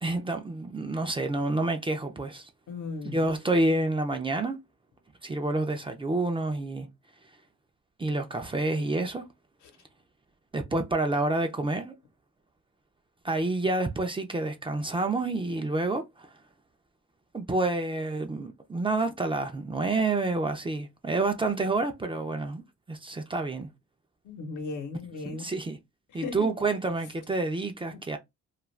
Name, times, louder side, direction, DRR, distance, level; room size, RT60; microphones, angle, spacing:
voice 1, 0.0-2.5 3.0-4.6 5.2-6.9 8.0-9.2 10.5-11.9 13.2-16.3 17.3-22.6 22.9-23.7 25.3-25.8 26.1-28.2, right 2 dB, 15° right, 0.5 m, -28 dB
voice 2, 2.7-3.3 24.2-25.5 26.1-26.5 27.9-28.0, left 4 dB, 75° left, 1.0 m, -37 dB
2.4 x 2.3 x 3.1 m
cardioid pair, 90°, 30 cm